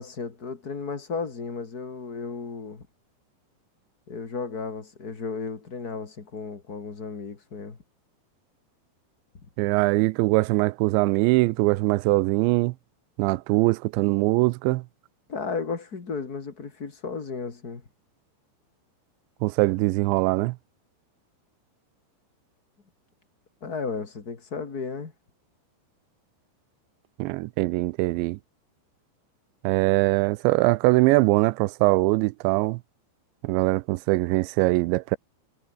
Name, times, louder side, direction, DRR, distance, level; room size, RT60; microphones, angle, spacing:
voice 1, 0.0-2.9 4.1-7.8 9.4-9.5 15.3-17.8 23.6-25.1, left 5 dB, 30° left, 2.0 m, -34 dB
voice 2, 9.6-12.7 13.2-14.8 19.4-20.6 27.2-28.4 29.6-32.8 33.4-35.2, right 22 dB, 80° right, 2.8 m, -22 dB
omnidirectional pair, 5.4 m